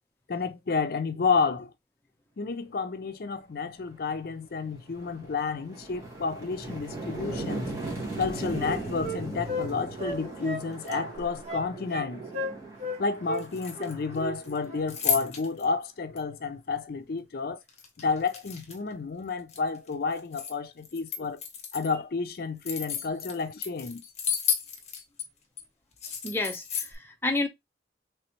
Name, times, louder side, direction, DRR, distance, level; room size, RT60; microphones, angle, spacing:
voice 1, 0.3-1.7 2.4-7.7 8.2-12.2 13.0-17.6 18.0-21.4 21.7-24.0, left 4 dB, 60° left, 0.5 m, -30 dB
sound 1, 3.9-4.1 4.5-15.3, right 2 dB, 20° right, 1.5 m, -39 dB
Wind instrument woodwind instrument, 7.7-9.7 10.0-11.1 11.4-12.1 12.3-13.0 13.2-13.4 13.7-14.4 14.6-14.8, equal, 40° right, 1.0 m, -35 dB
sound 2, 10.7-11.4 13.3-14.2 14.4-15.6 16.2-16.3 17.7-18.9 19.3-20.5 20.8-21.9 22.3-25.2 25.6-25.7 26.0-26.9, left 8 dB, 40° left, 0.9 m, -33 dB
voice 2, 26.2-27.5, left 2 dB, 15° left, 0.7 m, -30 dB
3.4 x 3.0 x 2.9 m
head